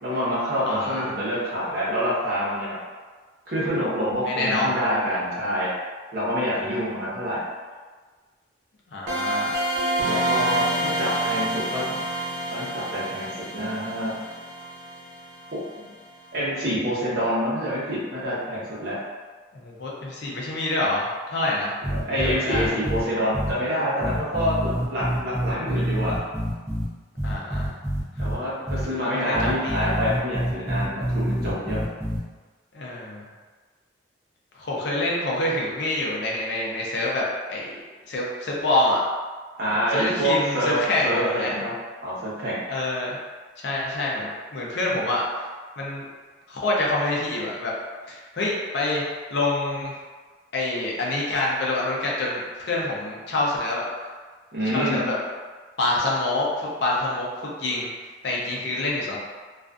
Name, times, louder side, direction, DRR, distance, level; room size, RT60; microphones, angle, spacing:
voice 1, 0.0-2.8 3.5-5.7 6.1-7.4 10.0-12.0 12.5-14.1 15.5-15.9 16.3-19.0 21.8-26.2 28.2-31.8 39.6-40.8 41.0-41.7 42.0-42.6 54.5-55.0, equal, 55° right, -8 dB, 0.8 m, -26 dB
voice 2, 0.6-1.1 4.3-4.8 6.7-6.8 8.9-9.5 19.5-21.7 22.2-22.8 27.2-27.7 29.0-29.9 32.7-33.2 34.5-37.2 37.5-37.7 38.1-39.0 39.9-41.5 42.7-43.2 43.6-45.4 45.8-46.1 46.5-47.7 48.1-49.0 49.3-49.9 50.5-53.9 54.7-55.2 55.8-57.9 58.2-59.2, left 2 dB, 60° left, -4 dB, 0.5 m, -26 dB
sound 1, 9.1-15.7, right 1 dB, 90° right, 1.0 m, -28 dB
sound 2, 21.8-23.0 23.3-23.5 24.0-26.8 27.2-28.3 28.7-28.8 29.3-32.2, equal, 15° right, 0.6 m, -27 dB
2.4 x 2.2 x 2.4 m, 1.4 s
head